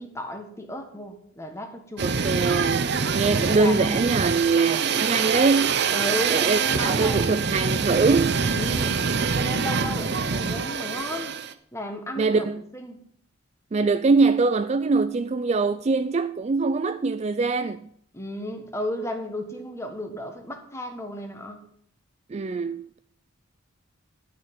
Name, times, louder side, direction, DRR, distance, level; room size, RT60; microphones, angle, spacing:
voice 1, 0.0-2.1 3.0-4.0 5.9-7.5 8.5-9.0 9.3-11.4 11.7-12.5 12.7-13.0 18.1-21.6, left 1 dB, 15° left, 1.5 m, -34 dB
voice 2, 2.0-5.8 6.3-8.4 12.2-12.6 13.7-17.9 22.3-23.0, right 4 dB, 30° right, 0.4 m, -23 dB
sound 1, 2.0-11.5, right 5 dB, 55° right, 0.7 m, -25 dB
11.5 x 6.4 x 7.7 m
head